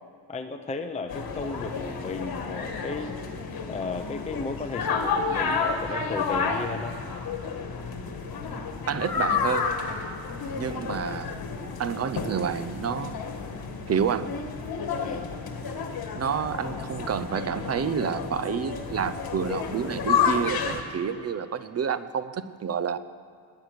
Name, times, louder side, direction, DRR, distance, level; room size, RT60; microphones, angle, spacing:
voice 1, 0.3-3.1 3.7-7.0 15.0-15.3, left 4 dB, 15° left, 5 dB, 0.6 m, -34 dB
sound 1, 1.1-20.8, left 5 dB, 50° left, 1.5 m, -30 dB
voice 2, 8.9-9.7 10.5-11.4 11.8-13.2 13.9-14.3 16.2-23.0, right 7 dB, 35° right, 14 dB, 0.6 m, -29 dB
20.0 x 8.6 x 6.5 m, 2.4 s
cardioid pair, 135°, 46 cm